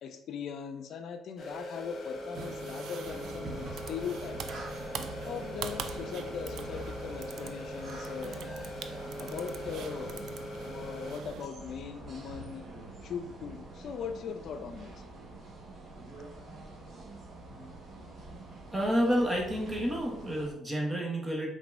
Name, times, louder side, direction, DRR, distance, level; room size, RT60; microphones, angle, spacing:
voice 1, 0.0-4.5 5.2-8.5 9.2-10.2 10.6-12.7 13.0-15.0, left 6 dB, 65° left, 8 dB, 0.5 m, -40 dB
sound 1, 1.4-11.2, left 1 dB, 50° left, 1.0 m, -42 dB
sound 2, 2.3-11.5, right 8 dB, 70° right, 0.4 m, -44 dB
sound 3, 3.0-20.5, right 2 dB, 45° right, 1.3 m, -46 dB
voice 2, 18.7-21.5, equal, 20° right, -1 dB, 1.1 m, -29 dB
5.3 x 3.6 x 2.6 m, 0.85 s
cardioid pair, 85°, 0 cm